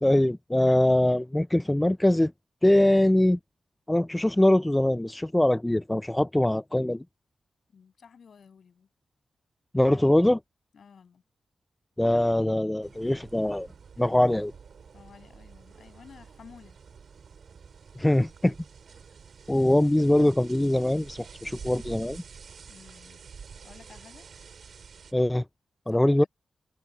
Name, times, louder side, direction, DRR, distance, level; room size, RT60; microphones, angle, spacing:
voice 1, 0.0-2.3 2.6-3.4 3.9-7.0 9.7-10.4 12.0-13.7 14.0-14.5 18.0-18.5 19.5-22.2 25.1-25.4 25.9-26.2, left 1 dB, 10° left, 0.3 m, -22 dB
voice 2, 7.7-8.9 10.7-11.2 14.9-16.8 22.7-23.2 23.6-24.3 25.9-26.3, left 6 dB, 65° left, 7.4 m, -52 dB
sound 1, 12.8-25.1, right 6 dB, 65° right, 5.2 m, -48 dB
cardioid pair, 85°, 0 cm